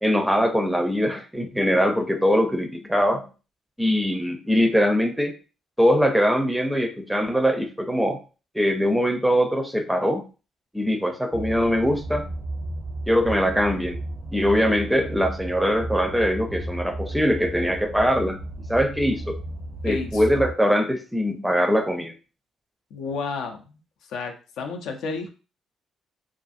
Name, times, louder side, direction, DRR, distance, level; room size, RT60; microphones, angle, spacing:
voice 1, 0.0-3.3 3.8-5.3 5.8-8.2 8.5-10.3 10.7-12.3 13.1-14.0 14.3-18.4 18.7-19.4 19.8-22.1, equal, 5° right, 6 dB, 0.5 m, -22 dB
sound 1, 11.3-20.5, right 1 dB, 70° right, 0.6 m, -34 dB
voice 2, 19.8-20.2 22.9-23.7 24.1-25.3, left 4 dB, 80° left, 4 dB, 0.5 m, -31 dB
2.5 x 2.5 x 2.5 m, 0.34 s
cardioid pair, 90°, 0 cm